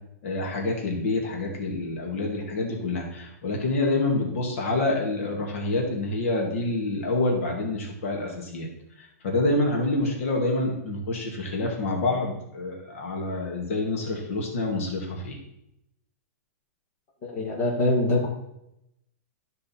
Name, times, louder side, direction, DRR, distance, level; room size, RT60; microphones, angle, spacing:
voice 1, 0.2-8.7 9.0-15.4, left 2 dB, 55° left, 0 dB, 2.1 m, -27 dB
voice 2, 17.3-18.3, left 2 dB, 25° left, -4 dB, 2.2 m, -23 dB
12.5 x 5.2 x 4.3 m, 0.82 s
supercardioid pair, 175°, 9 cm